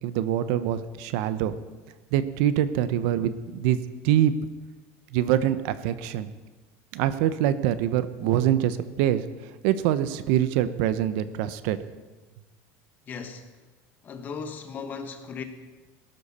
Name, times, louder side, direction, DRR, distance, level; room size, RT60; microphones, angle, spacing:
voice 1, 0.0-1.5 2.1-3.8 4.0-4.3 5.1-6.3 6.9-9.2 9.6-11.8, right 11 dB, 65° right, 0.8 m, -24 dB
voice 2, 13.1-13.5 14.0-15.4, left 5 dB, 25° left, 1.2 m, -36 dB
18.5 x 12.0 x 4.3 m
cardioid pair, 165°, 7 cm